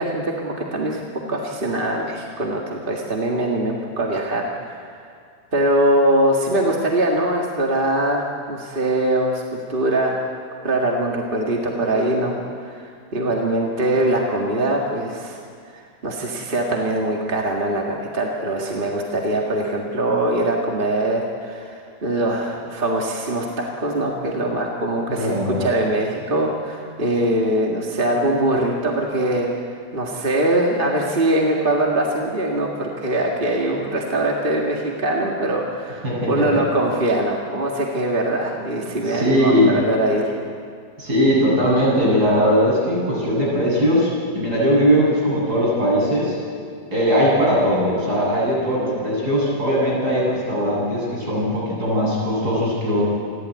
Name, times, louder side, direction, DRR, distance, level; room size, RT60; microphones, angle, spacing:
voice 1, 0.0-5.0 5.5-10.1 10.6-15.4 15.7-29.5 29.9-40.2, right 1 dB, 30° right, -1 dB, 2.0 m, -22 dB
voice 2, 25.1-25.6 36.0-36.6 39.0-39.8 41.0-46.4 46.9-53.1, equal, 70° right, -5 dB, 8.7 m, -19 dB
29.5 x 12.5 x 9.6 m, 2.2 s
omnidirectional pair, 1.8 m